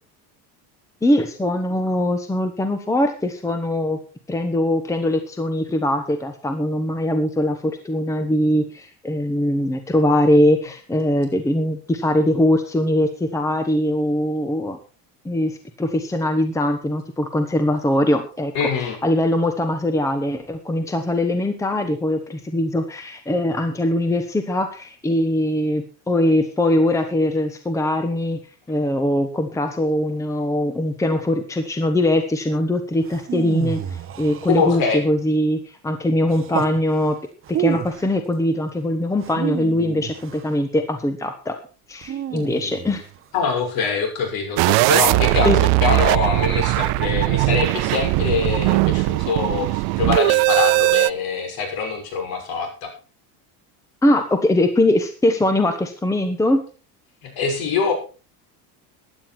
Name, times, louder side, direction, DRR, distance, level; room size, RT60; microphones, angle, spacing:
voice 1, 1.0-4.0 4.3-14.8 15.2-28.4 28.7-37.2 37.5-41.6 41.9-43.0 45.4-45.6 54.0-56.6, left 1 dB, 5° left, 7 dB, 1.1 m, -21 dB
voice 2, 18.5-19.0 34.4-35.0 43.3-52.9 57.2-57.9, left 5 dB, 55° left, 4 dB, 6.1 m, -24 dB
sound 1, 33.0-35.0 36.3-36.8 37.4-38.1 39.2-40.5 42.0-43.2 44.8-45.6, right 9 dB, 30° right, 1.2 m, -30 dB
sound 2, 44.6-51.1, right 22 dB, 60° right, 0.5 m, -19 dB
15.5 x 11.0 x 4.4 m, 0.35 s
cardioid pair, 165°, 44 cm